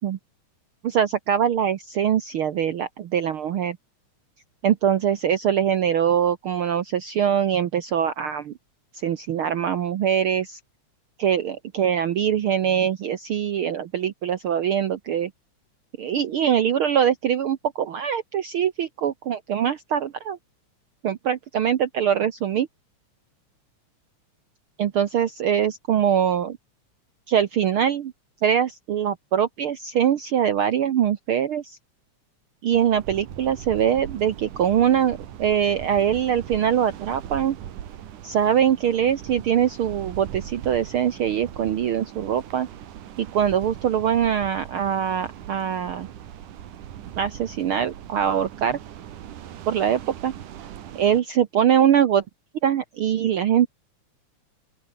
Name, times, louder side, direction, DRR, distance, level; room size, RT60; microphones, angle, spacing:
voice 1, 0.8-3.8 4.6-8.5 9.0-10.6 11.2-15.3 16.0-20.4 21.0-22.7 24.8-26.6 27.3-28.1 28.4-31.8 32.6-37.6 38.2-42.7 43.2-46.1 47.2-48.8 49.7-50.3 50.9-52.2 52.6-53.7, right 9 dB, 65° right, 1.4 m, -23 dB
sound 1, 32.7-51.2, right 10 dB, 90° right, 3.2 m, -40 dB
open air
omnidirectional pair, 3.5 m